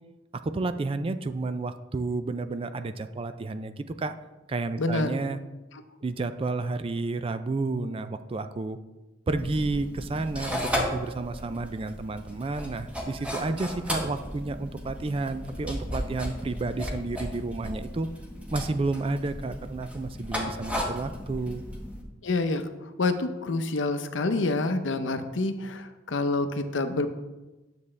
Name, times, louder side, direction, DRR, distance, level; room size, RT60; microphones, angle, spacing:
voice 1, 0.4-4.1 4.5-5.4 6.0-8.8 9.3-18.1 18.5-21.6, right 3 dB, 30° right, 11 dB, 0.4 m, -31 dB
voice 2, 4.8-5.1 22.2-27.1, left 2 dB, 75° left, 9 dB, 0.6 m, -27 dB
sound 1, 9.3-22.0, equal, 5° right, 1.0 m, -35 dB
9.6 x 6.9 x 3.2 m, 1.1 s
head